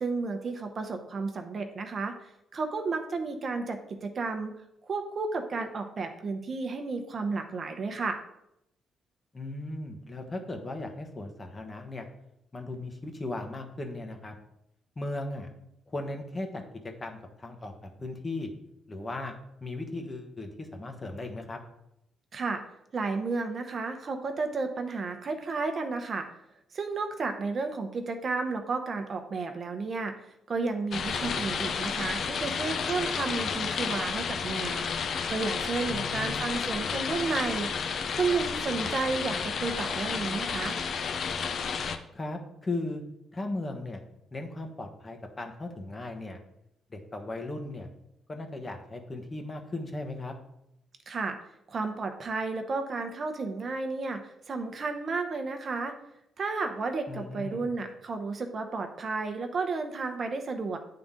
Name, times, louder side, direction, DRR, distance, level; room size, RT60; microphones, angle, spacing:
voice 1, 0.0-4.5 4.8-8.2 22.3-22.6 22.9-26.3 26.7-30.1 30.5-34.9 35.3-37.7 38.1-40.8 51.1-51.4 51.7-54.2 54.5-55.9 56.4-60.8, right 4 dB, 45° right, 6 dB, 0.8 m, -32 dB
voice 2, 9.3-12.1 12.5-14.3 15.0-15.5 15.9-18.5 18.9-19.3 19.6-21.6 31.2-31.3 35.9-36.4 42.1-43.0 43.3-44.0 44.3-46.4 46.9-47.9 48.3-50.3 57.1-57.7, left 2 dB, 25° left, 4 dB, 1.1 m, -37 dB
sound 1, 30.9-42.0, left 6 dB, 60° left, 0.5 m, -31 dB
8.6 x 3.8 x 3.7 m, 0.82 s
cardioid pair, 90°, 0 cm